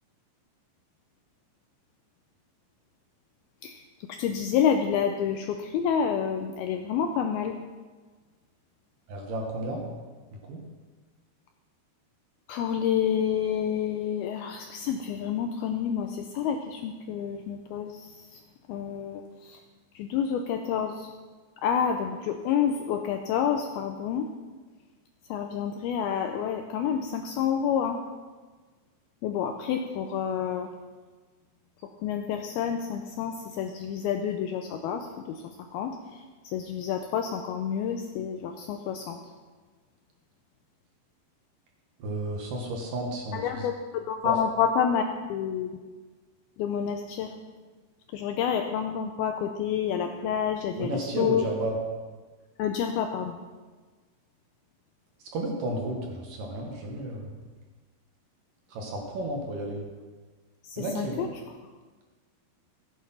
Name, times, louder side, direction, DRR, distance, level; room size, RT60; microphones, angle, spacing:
voice 1, 4.1-7.6 12.5-18.4 18.7-19.6 20.0-21.1 21.6-24.3 25.3-28.0 29.2-30.7 32.0-35.4 35.7-39.2 43.3-45.7 46.6-47.3 48.1-51.4 52.6-53.4 60.6-61.3, left 8 dB, 80° left, 5 dB, 2.2 m, -29 dB
voice 2, 9.1-9.9 10.5-10.6 42.0-43.5 44.2-44.3 50.7-51.7 55.3-57.3 58.7-59.8 60.8-61.2, right 1 dB, 60° right, 1 dB, 2.6 m, -32 dB
15.0 x 8.7 x 5.7 m, 1.4 s
omnidirectional pair, 5.0 m